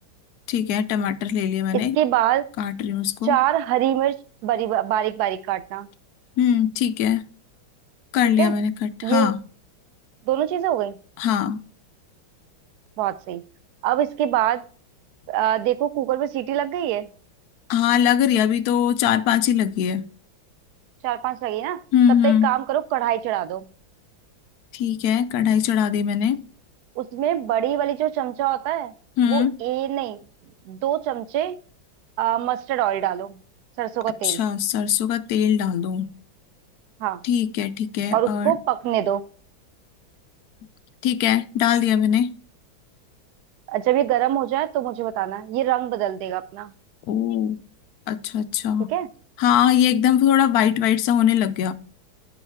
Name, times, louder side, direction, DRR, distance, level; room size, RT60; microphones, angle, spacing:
voice 1, 0.5-2.0 2.6-3.4 6.4-7.2 8.1-9.4 11.2-11.6 17.7-20.1 21.9-22.5 24.7-26.4 29.2-29.6 34.2-36.1 37.2-38.5 41.0-42.3 47.1-47.6 48.1-48.9 49.4-51.7, left 9 dB, 75° left, 0.8 m, -21 dB
voice 2, 1.7-2.4 3.2-4.2 4.4-5.9 8.4-8.6 9.0-9.3 10.3-11.0 13.0-13.4 13.8-14.6 15.3-17.1 21.0-21.8 22.2-23.6 27.0-28.9 29.3-30.2 30.7-31.6 32.2-33.4 33.8-34.4 37.0-37.2 38.1-39.2 43.7-46.7 48.9-49.1, right 12 dB, 80° right, 0.9 m, -24 dB
11.0 x 5.5 x 4.6 m
omnidirectional pair, 2.2 m